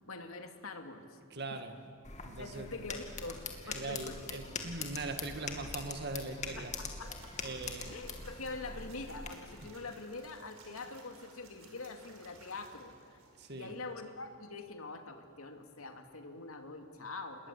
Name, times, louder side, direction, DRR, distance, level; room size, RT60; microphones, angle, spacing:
voice 1, 0.1-1.2 1.5-1.6 2.3-4.2 6.6-7.3 7.9-13.2 13.5-17.5, left 3 dB, 90° left, 5 dB, 2.5 m, -44 dB
voice 2, 1.3-1.8 2.2-2.7 3.7-6.7 7.4-8.0 13.4-13.7, right 2 dB, 50° right, 6 dB, 1.8 m, -41 dB
sound 1, 2.0-9.3, left 4 dB, 35° left, 2.6 m, -43 dB
sound 2, 7.0-14.0, right 3 dB, 80° right, 5.4 m, -58 dB
28.5 x 21.0 x 8.5 m, 2.3 s
head